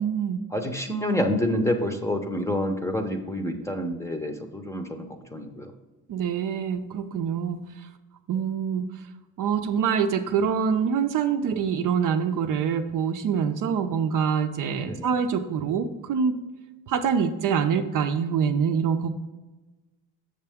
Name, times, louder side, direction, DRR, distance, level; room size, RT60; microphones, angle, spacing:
voice 1, 0.0-0.4 6.1-7.9 8.3-9.1 9.4-16.4 16.9-19.1, right 7 dB, 60° right, 7 dB, 0.6 m, -25 dB
voice 2, 0.5-5.7 14.8-15.1, left 1 dB, 10° left, 5 dB, 0.7 m, -28 dB
6.7 x 6.6 x 3.5 m, 1.2 s
cardioid pair, 110°, 37 cm